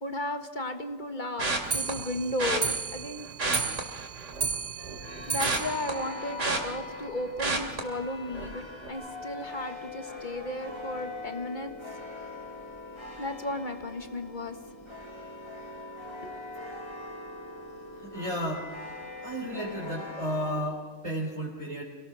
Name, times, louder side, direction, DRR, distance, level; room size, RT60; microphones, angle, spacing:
voice 1, 0.0-3.3 5.0-11.7 13.2-14.6 16.2-16.3, left 1 dB, 40° left, 7 dB, 1.7 m, -35 dB
sound 1, 1.4-1.9 2.4-2.6 3.3-4.5 4.9-7.1 7.4-7.8 8.3-8.5 8.8-8.9, right 3 dB, 70° right, 3.1 m, -30 dB
Clock, 1.6-7.1 7.5-7.6 7.8-7.9 8.2-8.3 8.6-8.7 9.4-9.5 10.2-10.3 11.0-11.1, right 6 dB, 40° right, 0.8 m, -35 dB
sound 2, 4.8-20.6, left 2 dB, 20° left, 3.7 m, -42 dB
voice 2, 17.9-18.7 19.2-21.8, equal, 25° right, -3 dB, 3.8 m, -33 dB
26.5 x 18.5 x 6.2 m, 1.4 s
omnidirectional pair, 1.3 m